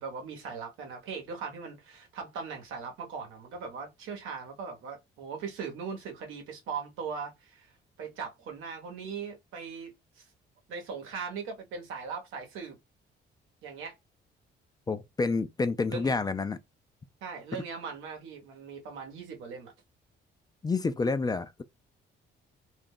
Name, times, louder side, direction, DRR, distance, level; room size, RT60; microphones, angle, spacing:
voice 1, 0.0-7.7 8.0-10.3 10.7-12.8 13.6-13.9 15.9-16.1 17.2-19.7, right 5 dB, 90° right, 0.9 m, -39 dB
voice 2, 14.9-16.6 20.6-21.6, left 4 dB, 20° left, 0.3 m, -29 dB
2.4 x 2.1 x 3.6 m
cardioid pair, 90°, 20 cm